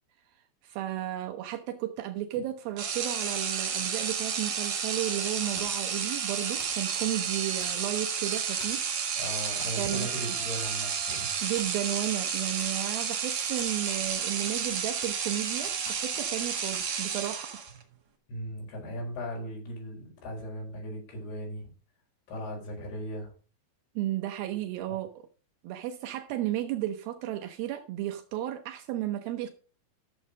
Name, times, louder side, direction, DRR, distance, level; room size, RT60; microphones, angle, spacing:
voice 1, 0.6-9.3 9.8-10.4 11.4-17.6 24.0-25.3 25.6-29.5, right 13 dB, 85° right, 2.1 m, -34 dB
sound 1, 2.8-17.8, right 6 dB, 55° right, 2.2 m, -31 dB
sound 2, 5.5-5.9 6.6-6.8 7.6-8.0 8.6-8.9 9.6-9.8 10.1-10.2 10.6-11.0 11.6-11.7 12.6-13.0 13.6-14.2 14.4-15.3 15.6-16.4 16.7-16.9 17.2-17.4, left 2 dB, 35° left, 5.8 m, -49 dB
voice 2, 9.2-11.3 18.3-21.7 22.3-23.3 24.9-25.0, equal, 60° left, 6.6 m, -37 dB
13.0 x 7.2 x 5.2 m
omnidirectional pair, 5.3 m